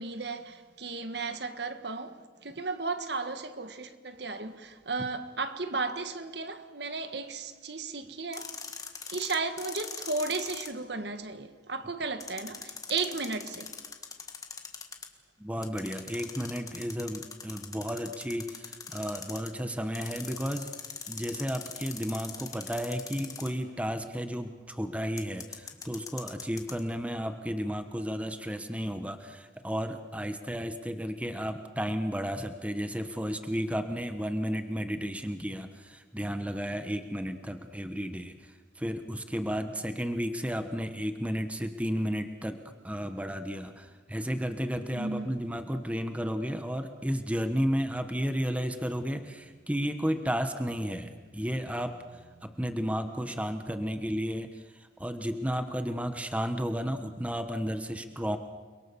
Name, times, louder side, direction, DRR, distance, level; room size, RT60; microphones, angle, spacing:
voice 1, 0.0-8.5 9.1-13.7 44.9-45.3 52.4-52.5, right 3 dB, 60° right, 1.6 m, -34 dB
sound 1, 8.3-10.7 12.2-15.1 15.6-19.5 19.9-23.7 25.2-26.8, left 5 dB, 20° left, 1.7 m, -42 dB
voice 2, 15.4-20.7 21.1-42.6 42.8-58.4, equal, 5° right, 1.1 m, -33 dB
30.0 x 22.0 x 7.0 m
head